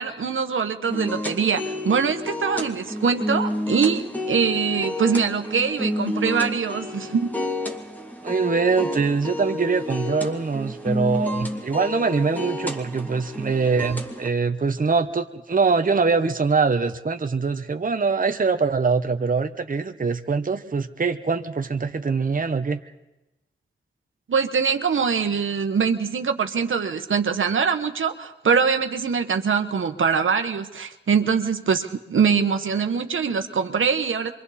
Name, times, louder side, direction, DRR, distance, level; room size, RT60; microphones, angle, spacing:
voice 1, 0.0-7.3 24.3-34.3, right 6 dB, 80° right, 6 dB, 1.3 m, -23 dB
sound 1, 0.9-14.3, left 1 dB, 10° left, 2.3 m, -30 dB
voice 2, 8.2-22.8, right 4 dB, 45° right, 6 dB, 1.1 m, -23 dB
27.0 x 24.0 x 4.3 m, 0.97 s
cardioid pair, 65°, 20 cm